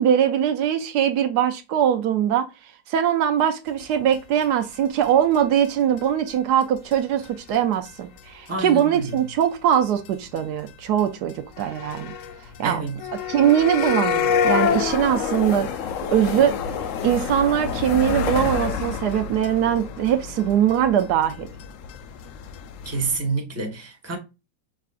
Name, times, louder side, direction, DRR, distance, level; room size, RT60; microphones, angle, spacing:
voice 1, 0.0-2.5 2.9-12.2 12.6-12.8 13.3-15.7 16.1-16.6 17.0-21.5, right 9 dB, 80° right, 1.2 m, -21 dB
sound 1, 4.1-4.2 4.4-4.5 4.7-4.8 5.0-5.1 5.3-5.4 5.6-5.7 6.0-6.3 6.6-6.7 6.9-7.0 7.2-7.5 7.8-7.9 8.2-8.8 9.1-9.4 9.7-9.8 10.0-10.1 10.4-10.5 10.7-10.8 11.0-11.1 11.3-23.2, left 7 dB, 70° left, 0.8 m, -28 dB
voice 2, 8.5-9.2 12.6-13.1 22.8-24.2, right 3 dB, 10° right, 1.1 m, -28 dB
5.6 x 3.6 x 2.4 m
omnidirectional pair, 1.8 m